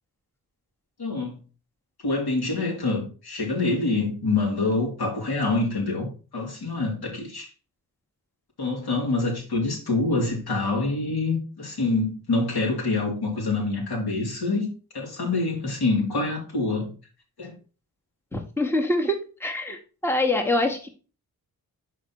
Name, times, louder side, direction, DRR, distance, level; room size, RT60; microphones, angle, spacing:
voice 1, 1.0-1.4 2.0-7.5 8.6-14.7 14.9-16.9 17.4-17.5, left 3 dB, 90° left, 3.0 m, -26 dB
voice 2, 18.3-20.9, left 1 dB, 5° left, 1.1 m, -25 dB
5.7 x 4.9 x 4.6 m
wide cardioid pair, 115°, 38 cm